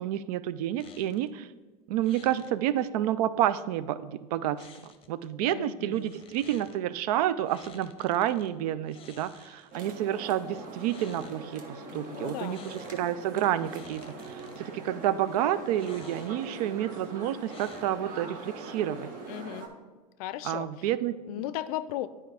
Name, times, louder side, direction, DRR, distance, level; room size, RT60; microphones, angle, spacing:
voice 1, 0.0-1.5 1.9-4.7 5.1-19.1 20.4-21.2, right 12 dB, 70° right, 15 dB, 0.5 m, -29 dB
sound 1, 0.8-1.3 2.0-2.5 4.6-5.3 5.9-6.8 7.5-8.5 8.9-9.9 10.7-11.4 12.4-13.1 13.5-14.6 15.7-16.5 17.4-18.1, left 6 dB, 25° left, 0.8 m, -52 dB
voice 2, 5.4-6.1 11.9-12.6 19.3-19.7 20.2-20.9 21.3-22.1, left 13 dB, 65° left, 15 dB, 0.5 m, -36 dB
sound 2, 9.7-19.7, right 3 dB, 40° right, 1.2 m, -42 dB
9.3 x 4.8 x 3.4 m, 1.3 s
hypercardioid pair, 105°, 21 cm